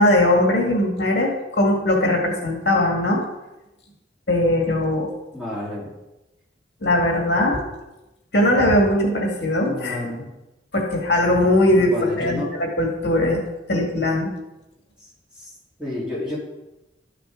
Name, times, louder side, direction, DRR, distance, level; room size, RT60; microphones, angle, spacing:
voice 1, 0.0-3.2 4.3-5.1 6.8-7.6 8.3-10.0 10.7-13.4 13.7-14.3, left 1 dB, 65° left, 0 dB, 2.0 m, -20 dB
voice 2, 5.3-5.9 9.6-10.3 11.8-12.5 15.0-15.1 15.4-15.5 15.8-16.4, left 1 dB, 5° right, -8 dB, 3.7 m, -30 dB
13.0 x 6.8 x 3.8 m, 0.98 s
head